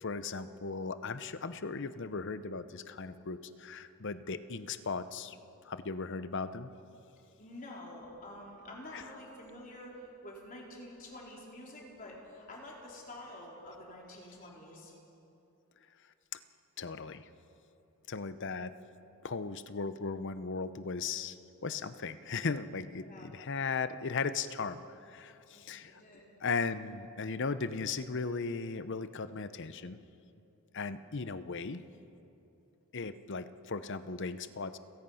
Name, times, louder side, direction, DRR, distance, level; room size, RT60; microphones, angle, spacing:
voice 1, 0.0-5.4 5.6-6.7 8.9-9.0 16.8-17.3 18.1-18.7 19.2-21.4 21.6-26.0 26.4-30.0 30.7-31.8 32.9-34.8, left 4 dB, 55° left, 13 dB, 0.7 m, -37 dB
voice 2, 7.4-14.9 22.9-23.3 25.5-26.3, left 1 dB, 40° left, -2 dB, 4.0 m, -48 dB
30.0 x 17.0 x 5.7 m, 2.8 s
head